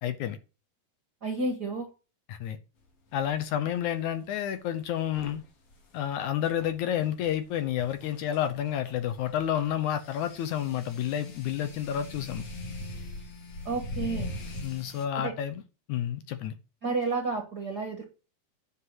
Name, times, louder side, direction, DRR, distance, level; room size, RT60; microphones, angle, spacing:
voice 1, 0.0-0.4 2.3-2.6 3.1-5.4 5.9-12.4 14.6-15.6 15.9-16.5, left 10 dB, 70° left, 2.0 m, -30 dB
voice 2, 1.2-1.9 13.6-14.3 15.2-15.3 16.8-18.1, right 3 dB, 50° right, 1.3 m, -31 dB
sound 1, 3.1-3.3 5.0-15.1, left 2 dB, 50° left, 2.9 m, -42 dB
9.7 x 6.0 x 7.9 m
omnidirectional pair, 3.9 m